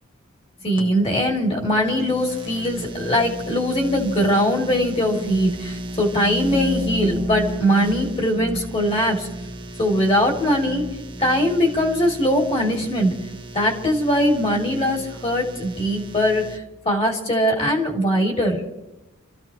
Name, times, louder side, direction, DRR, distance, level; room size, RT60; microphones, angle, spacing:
voice 1, 0.6-9.3 9.8-10.8 11.2-13.1 13.5-18.6, equal, 30° left, 0 dB, 2.8 m, -21 dB
sound 1, 0.8-16.6, right 1 dB, 25° right, 1.3 m, -33 dB
29.0 x 14.5 x 3.0 m, 0.93 s
head